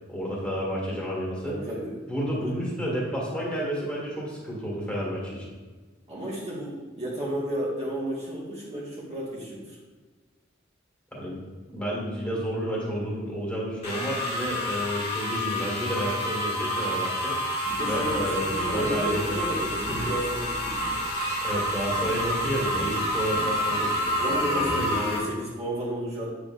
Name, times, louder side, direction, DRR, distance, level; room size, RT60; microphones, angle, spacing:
voice 1, 0.1-1.5 2.1-5.5 11.1-11.4 11.7-17.4 17.8-19.2 19.5-19.7 21.4-24.7, equal, 5° left, -6 dB, 2.0 m, -31 dB
voice 2, 1.5-1.9 2.3-2.6 6.1-9.8 17.7-20.8 24.2-26.3, equal, 35° right, -6 dB, 1.6 m, -32 dB
sound 1, 13.8-25.2, equal, 30° left, 1.7 m, -29 dB
Livestock farm animals working animals, 17.7-25.0, equal, 70° left, 1.6 m, -39 dB
8.6 x 6.4 x 2.5 m, 1.3 s
head